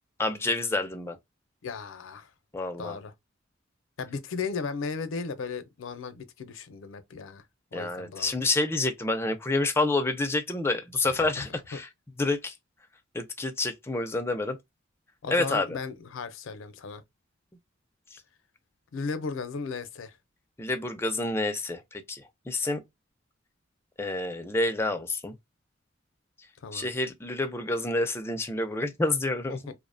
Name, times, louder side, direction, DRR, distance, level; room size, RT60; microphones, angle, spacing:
voice 1, 0.2-1.2 2.5-3.0 7.7-11.9 12.2-12.6 13.1-14.6 15.3-15.8 18.1-18.2 20.6-22.8 24.0-25.3 26.7-29.6, left 2 dB, 10° left, 0.3 m, -28 dB
voice 2, 1.6-2.3 2.8-3.1 4.0-7.4 7.7-8.4 11.4-11.5 11.7-11.8 15.2-17.0 18.9-20.2 26.6-26.9 29.5-29.7, left 5 dB, 80° left, 0.5 m, -36 dB
2.6 x 2.0 x 2.5 m
head